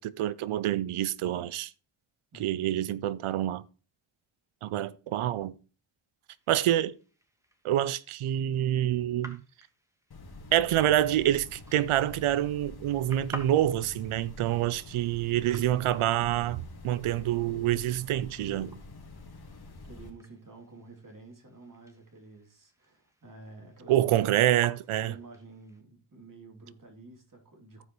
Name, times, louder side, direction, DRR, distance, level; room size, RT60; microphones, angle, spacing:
voice 1, 0.0-1.7 2.3-3.6 4.6-5.6 6.5-6.9 7.6-9.4 10.5-18.8 23.9-25.1, right 12 dB, 90° right, 0.6 m, -27 dB
voice 2, 2.3-2.7 19.8-24.2 25.0-27.8, right 3 dB, 40° right, 2.8 m, -50 dB
sound 1, 6.3-25.8, equal, 5° right, 1.4 m, -52 dB
sound 2, 10.1-20.1, left 2 dB, 50° left, 1.9 m, -47 dB
14.5 x 4.9 x 3.1 m
cardioid pair, 65°, 48 cm